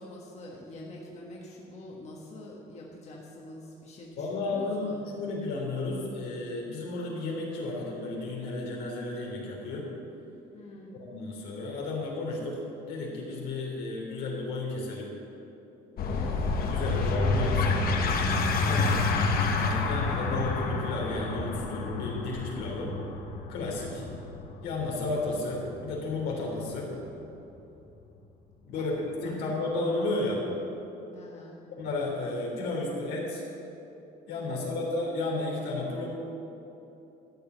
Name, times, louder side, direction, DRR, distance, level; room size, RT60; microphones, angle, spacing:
voice 1, 0.0-5.0 10.5-10.9 15.9-16.4 23.8-24.3 28.6-28.9 29.2-29.4 31.1-31.6 34.3-34.8, left 1 dB, 40° left, -3 dB, 1.7 m, -46 dB
voice 2, 4.2-9.9 10.9-15.1 16.6-17.8 18.6-19.1 19.5-23.0 23.5-24.0 24.6-26.9 28.7-30.4 31.8-33.4 34.3-36.1, left 2 dB, 80° left, -3 dB, 3.2 m, -33 dB
sound 1, 16.0-27.1, left 3 dB, 60° left, 1.3 m, -29 dB
13.0 x 5.3 x 9.1 m, 3.0 s
cardioid pair, 110°, 17 cm